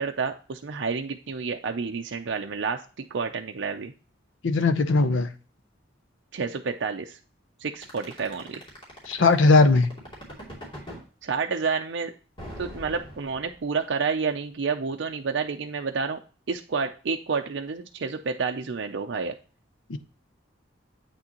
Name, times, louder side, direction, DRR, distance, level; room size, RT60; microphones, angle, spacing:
voice 1, 0.0-3.9 6.3-7.2 7.6-8.6 11.2-12.1 12.6-16.2 16.5-19.3, right 5 dB, 65° right, 4 dB, 0.5 m, -29 dB
voice 2, 4.4-5.3 9.1-9.9 19.9-20.0, left 3 dB, 85° left, 10 dB, 0.7 m, -19 dB
sound 1, 7.8-11.0 12.4-13.8, equal, 30° left, 2.7 m, -41 dB
8.2 x 6.2 x 2.9 m, 0.36 s
head